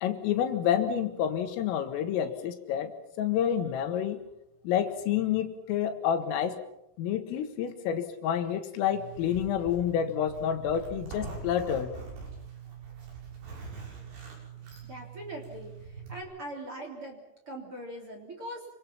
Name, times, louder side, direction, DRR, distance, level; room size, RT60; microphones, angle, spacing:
voice 1, 0.0-4.2 4.6-6.6 7.0-11.9, left 9 dB, 80° left, 7 dB, 4.2 m, -29 dB
Zipper (clothing), 8.9-16.2, right 6 dB, 75° right, 9.4 m, -43 dB
voice 2, 14.8-18.6, right 1 dB, 30° right, 1 dB, 3.8 m, -41 dB
27.5 x 25.5 x 5.9 m, 0.84 s
omnidirectional pair, 5.9 m